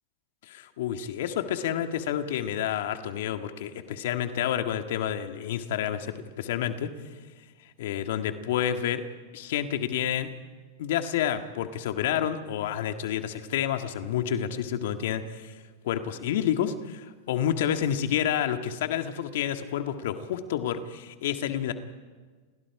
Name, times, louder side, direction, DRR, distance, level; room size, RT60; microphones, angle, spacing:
voice 1, 0.5-6.9 7.8-9.0 9.3-10.3 10.8-15.5 15.8-21.7, left 10 dB, 70° left, 6 dB, 1.9 m, -29 dB
29.0 x 21.5 x 4.9 m, 1.4 s
hypercardioid pair, 115°, 0 cm